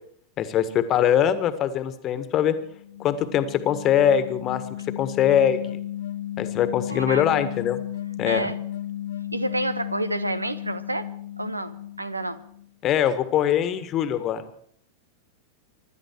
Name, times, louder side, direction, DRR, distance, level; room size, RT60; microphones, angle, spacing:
voice 1, 0.4-2.6 3.0-5.8 6.4-7.8 8.2-8.5 12.8-14.4, left 9 dB, 30° left, 12 dB, 1.6 m, -22 dB
sound 1, 2.6-12.7, left 12 dB, 60° left, 0.8 m, -34 dB
voice 2, 6.9-7.5 8.3-8.6 9.3-11.1 11.4-12.4, right 2 dB, 85° right, 16 dB, 1.0 m, -29 dB
25.5 x 12.0 x 4.6 m, 0.63 s
figure-of-eight pair, 90°, 0 cm